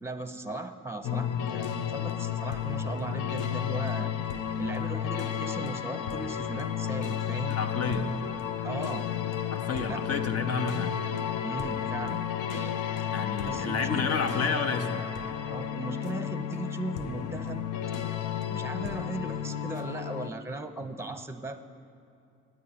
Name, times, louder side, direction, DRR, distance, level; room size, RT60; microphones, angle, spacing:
voice 1, 0.0-4.1 4.6-7.6 8.6-9.1 9.9-10.0 11.4-12.2 12.5-12.8 13.4-14.1 14.3-14.5 15.5-17.6 18.5-21.6, right 2 dB, 10° right, 9 dB, 0.7 m, -37 dB
sound 1, 1.0-20.3, left 9 dB, 80° left, 0.6 m, -32 dB
voice 2, 7.5-8.2 9.5-11.0 13.1-15.1, left 4 dB, 55° left, 5 dB, 1.0 m, -30 dB
9.3 x 9.3 x 8.5 m, 2.7 s
cardioid pair, 90°, 30 cm